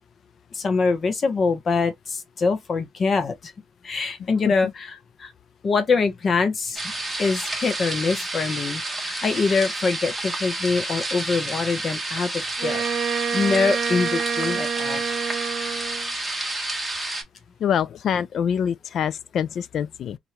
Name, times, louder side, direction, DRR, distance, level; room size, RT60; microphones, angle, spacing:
voice 1, 0.5-3.5 3.8-5.3 5.6-6.9 7.2-12.8 13.3-15.0, left 4 dB, 40° left, 0.7 m, -24 dB
sound 1, 6.7-17.2, right 2 dB, 10° right, 1.2 m, -30 dB
Wind instrument woodwind instrument, 12.6-16.1, right 7 dB, 75° right, 0.7 m, -27 dB
voice 2, 17.6-20.2, left 8 dB, 60° left, 0.3 m, -25 dB
2.7 x 2.6 x 3.2 m
cardioid pair, 100°, 0 cm